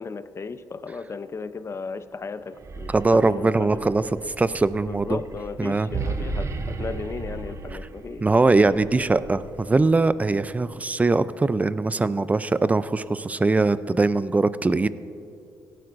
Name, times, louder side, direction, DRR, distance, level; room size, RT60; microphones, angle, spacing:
voice 1, 0.0-3.9 4.9-8.2, left 4 dB, 40° left, 12 dB, 0.6 m, -35 dB
sound 1, 2.5-10.6, right 3 dB, 40° right, 0.8 m, -35 dB
voice 2, 2.9-4.0 4.4-5.2 5.6-5.9 8.2-14.9, right 3 dB, 20° right, 16 dB, 0.4 m, -21 dB
17.5 x 12.0 x 2.6 m, 2.7 s
supercardioid pair, 60°, 7 cm